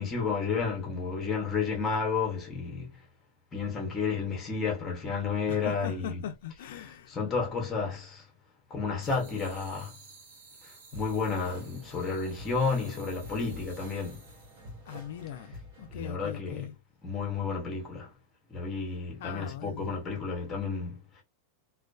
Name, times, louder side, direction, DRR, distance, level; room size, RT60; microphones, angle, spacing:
voice 1, 0.0-3.1 3.5-6.2 7.1-8.3 8.7-10.0 10.6-14.3 15.9-16.7 17.0-18.1 18.5-21.2, left 5 dB, 15° left, 0.7 m, -31 dB
voice 2, 5.5-7.2 14.9-16.7 19.2-20.0, left 10 dB, 70° left, 0.3 m, -40 dB
sound 1, 9.0-14.8, right 4 dB, 75° right, 1.1 m, -54 dB
sound 2, 10.9-16.0, equal, 55° right, 1.4 m, -48 dB
2.4 x 2.2 x 2.3 m
supercardioid pair, 170°, 0 cm